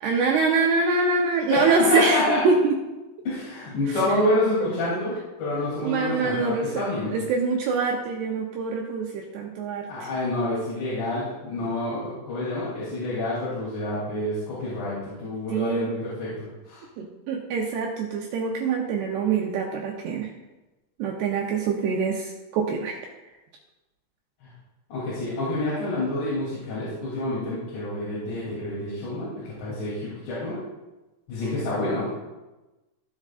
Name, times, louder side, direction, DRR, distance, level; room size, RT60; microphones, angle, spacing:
voice 1, 0.0-2.7 3.9-4.0 5.8-10.1 15.5-15.9 17.0-20.3 21.0-22.9, right 4 dB, 85° right, 0 dB, 2.3 m, -25 dB
voice 2, 1.5-2.4 3.3-7.1 9.9-16.3 16.7-16.8 24.9-30.6 31.3-32.1, left 1 dB, 60° left, -9 dB, 5.1 m, -28 dB
16.0 x 7.1 x 2.5 m, 1.1 s
omnidirectional pair, 5.8 m